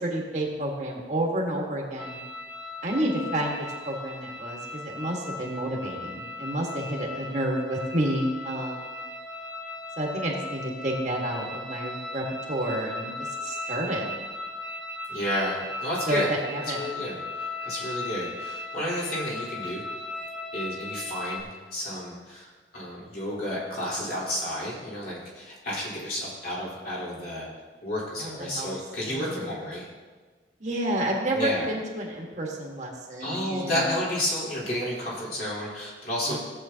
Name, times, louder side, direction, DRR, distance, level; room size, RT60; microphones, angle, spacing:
voice 1, 0.0-2.2 2.8-8.8 10.0-14.1 16.1-16.8 28.2-28.7 29.1-29.5 30.6-33.9 36.3-36.4, right 1 dB, 40° right, -1 dB, 1.7 m, -30 dB
sound 1, 2.0-21.4, left 2 dB, 5° left, 2.1 m, -37 dB
voice 2, 15.1-16.3 16.7-17.2 17.6-19.8 20.5-27.5 27.8-29.9 31.3-31.7 33.2-36.4, equal, 55° left, -7 dB, 3.8 m, -31 dB
17.0 x 8.0 x 2.9 m, 1.4 s
head